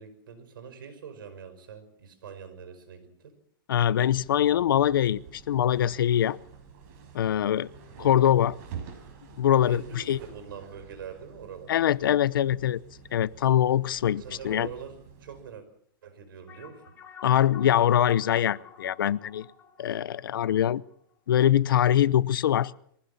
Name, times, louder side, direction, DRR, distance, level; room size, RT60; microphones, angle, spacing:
voice 1, 0.0-3.3 7.9-8.1 9.7-11.7 13.4-13.5 14.2-15.6 16.0-16.8, right 7 dB, 80° right, 5.6 m, -44 dB
voice 2, 3.7-6.4 7.1-7.7 8.0-8.6 9.4-10.2 11.7-12.8 13.1-14.7 17.2-19.5 19.8-20.8 21.3-22.7, left 11 dB, 90° left, 0.8 m, -23 dB
sound 1, 3.8-15.6, right 7 dB, 45° right, 5.4 m, -48 dB
sound 2, 16.5-21.3, left 7 dB, 15° left, 3.7 m, -50 dB
23.5 x 15.5 x 7.2 m
supercardioid pair, 165°, 11 cm